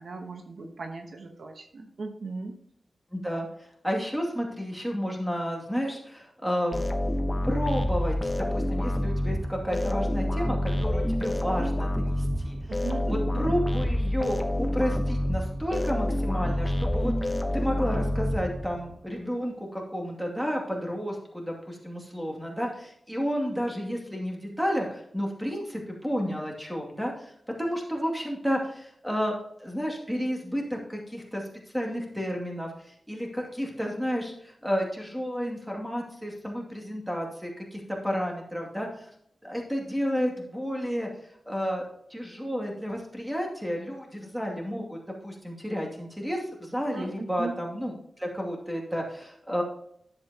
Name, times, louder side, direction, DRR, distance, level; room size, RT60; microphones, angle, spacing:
voice 1, 0.0-2.6 12.7-13.4 46.9-47.5, right 3 dB, 70° right, 4 dB, 1.1 m, -37 dB
voice 2, 3.1-3.5 3.8-6.8 7.4-12.6 13.1-27.3 27.6-31.5 31.7-39.1 39.4-41.1 41.5-45.0 45.2-49.6, equal, 5° right, 0 dB, 2.3 m, -31 dB
sound 1, 6.7-18.9, left 1 dB, 15° left, 1.0 m, -28 dB
10.5 x 7.7 x 2.9 m, 0.70 s
wide cardioid pair, 95°, 0 cm